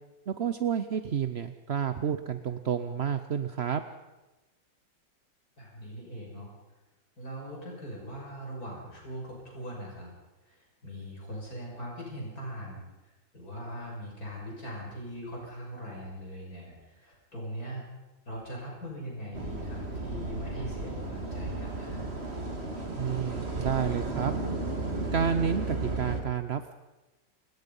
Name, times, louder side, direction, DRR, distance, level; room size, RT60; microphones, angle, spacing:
voice 1, 0.3-3.8 23.0-24.3 25.1-26.7, right 7 dB, 50° right, 10 dB, 0.8 m, -30 dB
voice 2, 5.6-6.5 7.2-10.1 10.5-17.8 18.2-22.1, equal, 50° left, -2 dB, 6.8 m, -41 dB
sound 1, 19.3-26.2, right 2 dB, 35° right, 2.7 m, -34 dB
30.0 x 18.5 x 5.5 m, 1.1 s
omnidirectional pair, 2.0 m